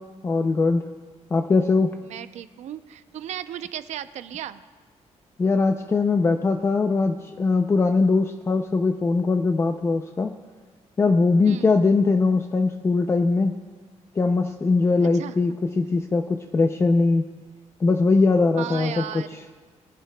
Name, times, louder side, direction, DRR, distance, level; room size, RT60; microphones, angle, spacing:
voice 1, 0.2-0.8 1.3-1.9 5.4-10.3 11.0-13.6 14.2-17.3 17.8-19.2, left 3 dB, 20° left, 6 dB, 0.4 m, -21 dB
voice 2, 2.0-4.6 11.5-11.7 15.0-15.4 18.6-19.4, right 11 dB, 80° right, 12 dB, 0.5 m, -35 dB
22.0 x 11.0 x 2.2 m, 1.5 s
cardioid pair, 155°, 12 cm